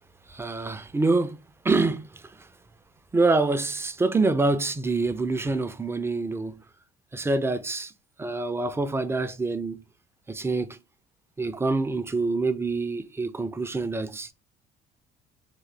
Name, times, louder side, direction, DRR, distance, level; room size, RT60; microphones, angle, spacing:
voice 1, 0.3-2.2 3.1-6.6 7.1-7.9 8.2-9.8 10.3-10.8 11.4-14.3, right 3 dB, 15° right, 0.4 m, -26 dB
3.7 x 2.2 x 3.2 m
supercardioid pair, 95°, 17 cm